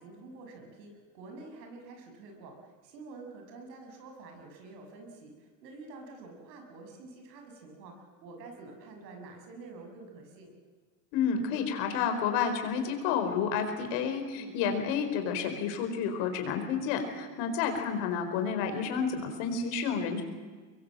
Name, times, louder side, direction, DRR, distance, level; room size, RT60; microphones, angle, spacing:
voice 1, 0.0-10.5 14.3-14.5, right 3 dB, 85° right, 3 dB, 7.0 m, -48 dB
voice 2, 11.1-20.2, left 6 dB, 65° left, 6 dB, 4.8 m, -30 dB
24.5 x 22.0 x 7.7 m, 1.4 s
supercardioid pair, 125°, 49 cm